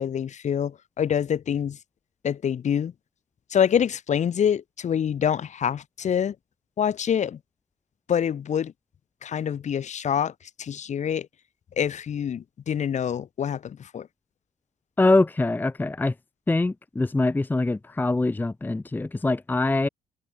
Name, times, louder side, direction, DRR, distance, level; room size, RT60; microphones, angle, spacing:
voice 1, 0.0-1.8 2.2-2.9 3.5-6.4 6.8-7.4 8.1-8.7 9.2-10.3 10.6-11.3 11.8-14.1, left 8 dB, 45° left, 1.9 m, -26 dB
voice 2, 15.0-16.1 16.5-19.9, left 2 dB, 10° left, 0.8 m, -23 dB
cardioid pair, 110°, 17 cm